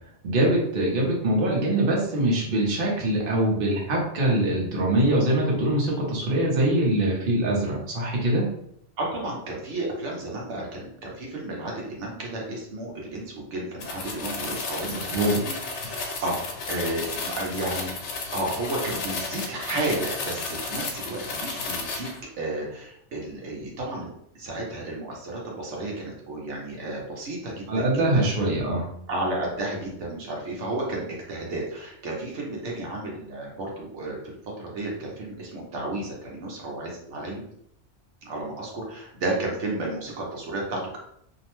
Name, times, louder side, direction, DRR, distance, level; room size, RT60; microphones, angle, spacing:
voice 1, 0.2-8.5 14.9-15.4 27.7-28.9, right 1 dB, 55° right, -3 dB, 0.9 m, -23 dB
voice 2, 9.0-17.9 18.3-22.1 22.4-28.5 29.1-37.4 38.2-41.0, right 2 dB, 80° right, -2 dB, 1.0 m, -32 dB
sound 1, 13.8-22.2, left 3 dB, 75° left, 0.9 m, -33 dB
2.7 x 2.0 x 2.9 m, 0.72 s
omnidirectional pair, 1.2 m